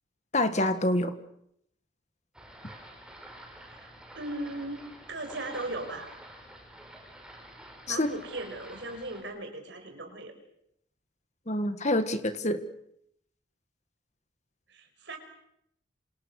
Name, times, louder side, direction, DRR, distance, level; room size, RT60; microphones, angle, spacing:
voice 1, 0.3-1.1 7.9-8.1 11.5-12.6, left 1 dB, 35° left, 9 dB, 1.8 m, -26 dB
sound 1, 2.3-9.2, right 1 dB, 5° right, 5.0 m, -49 dB
voice 2, 3.7-6.1 7.9-10.3 14.7-15.2, right 2 dB, 65° right, 5 dB, 5.9 m, -38 dB
27.5 x 27.5 x 6.6 m, 0.76 s
head